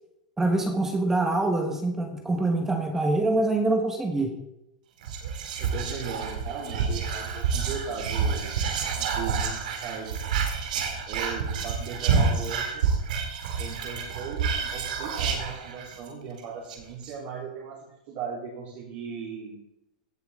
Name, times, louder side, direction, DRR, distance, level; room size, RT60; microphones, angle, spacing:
voice 1, 0.4-4.3, right 2 dB, 10° right, 4 dB, 1.3 m, -25 dB
Whispering, 5.0-16.1 16.4-16.5 16.7-17.1, right 5 dB, 75° right, 2.4 m, -28 dB
voice 2, 5.6-8.5 8.9-10.2 11.1-12.9 13.5-19.6, right 5 dB, 50° right, -5 dB, 3.7 m, -38 dB
17.0 x 7.0 x 3.8 m, 0.84 s
supercardioid pair, 140°, 4 cm